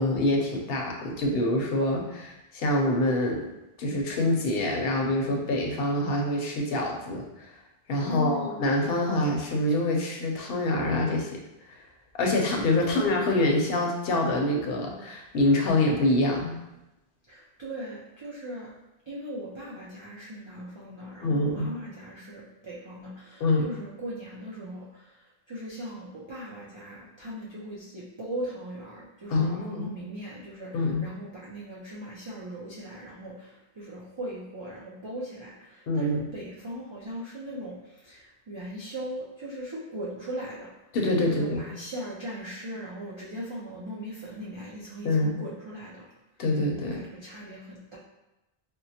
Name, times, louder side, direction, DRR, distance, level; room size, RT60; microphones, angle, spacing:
voice 1, 0.0-3.5 3.8-7.5 7.9-11.3 11.7-11.8 12.1-16.6 21.2-21.7 23.4-23.7 29.3-29.9 30.7-31.1 35.9-36.3 40.9-41.7 45.0-45.4 46.4-47.0, left 1 dB, 70° left, 1 dB, 0.8 m, -25 dB
voice 2, 8.0-8.6 12.8-13.0 17.3-18.7 19.1-24.9 25.5-30.7 31.0-37.8 38.0-40.7 41.2-46.1 46.9-48.0, equal, 40° right, -6 dB, 0.4 m, -39 dB
4.4 x 2.0 x 2.7 m, 0.94 s
omnidirectional pair, 1.0 m